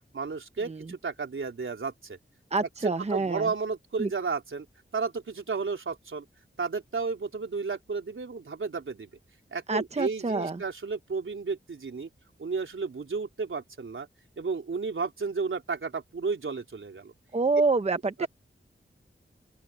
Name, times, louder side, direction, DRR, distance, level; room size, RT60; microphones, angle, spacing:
voice 1, 0.1-2.2 2.8-4.7 4.9-6.3 6.6-9.1 9.5-12.1 12.4-14.1 14.4-17.1 18.2-18.3, right 4 dB, 80° right, 3.7 m, -32 dB
voice 2, 2.5-3.5 4.0-4.1 9.7-10.6 17.3-18.3, right 3 dB, 35° right, 0.9 m, -27 dB
open air
wide cardioid pair, 85°, 20 cm